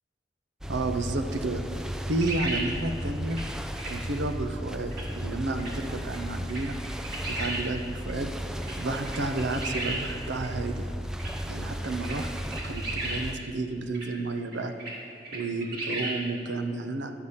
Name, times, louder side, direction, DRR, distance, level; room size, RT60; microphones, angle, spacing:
sound 1, 0.6-13.4, equal, 5° right, 0.4 m, -35 dB
voice 1, 0.7-1.6 2.1-3.4 3.9-6.8 7.3-8.3 8.8-10.9 11.5-12.3 12.6-14.7 15.3-17.1, right 2 dB, 85° right, 7 dB, 0.7 m, -31 dB
sound 2, 2.2-2.7 3.3-3.4 3.8-3.9 4.9-5.0 5.6-5.7 6.1-6.2 6.5-7.6 8.1-8.2 8.6-8.7 9.1-10.0 10.4-10.5 11.2-11.3 11.8-13.2 13.9-14.1 14.5-14.9 15.2-16.1, right 2 dB, 60° right, 2.4 m, -34 dB
11.5 x 6.6 x 5.6 m, 2.6 s
head